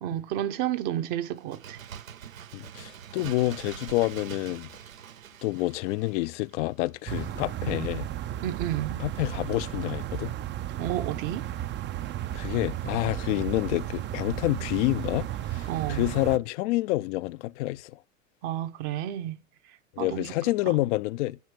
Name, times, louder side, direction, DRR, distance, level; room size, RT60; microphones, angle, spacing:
voice 1, 0.0-1.8 7.6-7.9 8.4-9.0 10.8-11.5 15.7-16.1 18.4-19.4 19.7-20.4 20.6-20.8, right 12 dB, 60° right, 1.0 m, -31 dB
Bird, 1.3-6.9 7.2-7.3, right 9 dB, 90° right, 0.6 m, -44 dB
voice 2, 2.5-4.7 5.4-8.1 9.0-10.3 12.3-17.9 20.0-21.4, left 18 dB, 65° left, 0.5 m, -28 dB
sound 1, 7.1-16.4, right 12 dB, 30° right, 0.4 m, -34 dB
9.5 x 4.9 x 6.2 m
hypercardioid pair, 80°, 39 cm